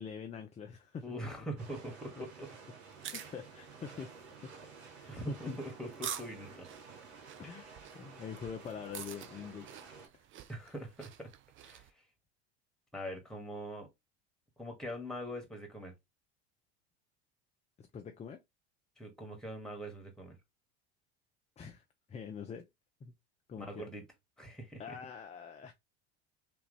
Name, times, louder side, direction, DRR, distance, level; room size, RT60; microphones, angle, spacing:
voice 1, 0.0-1.1 2.2-2.3 3.1-4.2 4.4-4.5 4.9-5.6 7.4-9.7 10.1-10.2 17.8-18.4 21.6-22.7 23.0-23.1 23.5-23.9 24.8-25.7, left 6 dB, 20° left, 0.6 m, -44 dB
voice 2, 1.0-2.5 5.1-6.7 7.4-7.5 10.5-11.3 11.6-11.8 12.9-13.9 14.6-15.9 19.0-20.4 23.6-24.0 24.4-25.0, equal, ahead, 1.8 m, -43 dB
sound 1, 1.6-10.1, right 5 dB, 80° right, 1.6 m, -52 dB
sound 2, 2.8-11.9, right 9 dB, 40° right, 0.7 m, -48 dB
3.5 x 3.0 x 3.3 m
hypercardioid pair, 80°, 32 cm